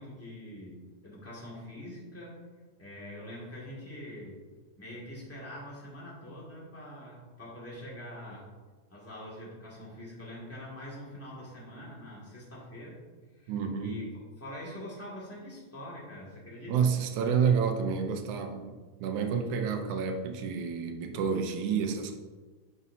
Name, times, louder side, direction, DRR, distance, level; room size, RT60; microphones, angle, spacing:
voice 1, 0.0-2.4 2.8-4.4 4.8-8.5 8.9-13.0 13.3-13.5 13.8-14.0 14.4-16.9, left 1 dB, 5° left, -6 dB, 1.7 m, -44 dB
voice 2, 13.5-14.0 16.7-22.1, right 6 dB, 85° right, 5 dB, 2.2 m, -29 dB
9.6 x 6.1 x 2.8 m, 1.3 s
omnidirectional pair, 3.4 m